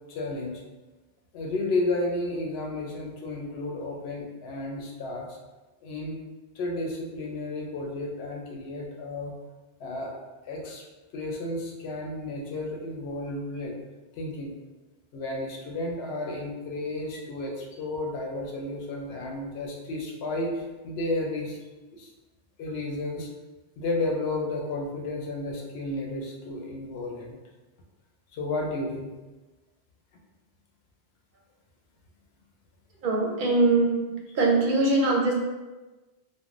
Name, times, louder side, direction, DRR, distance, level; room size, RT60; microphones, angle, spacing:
voice 1, 0.1-0.6 1.3-5.4 5.8-6.2 6.6-9.3 9.8-10.1 10.4-10.8 11.1-13.8 14.1-14.5 15.1-21.6 21.9-22.1 22.6-23.3 23.8-27.4 28.3-29.1, left 2 dB, 85° left, -1 dB, 0.8 m, -32 dB
voice 2, 33.0-35.3, right 2 dB, 60° right, -1 dB, 0.7 m, -22 dB
3.2 x 2.1 x 2.4 m, 1.2 s
omnidirectional pair, 1.0 m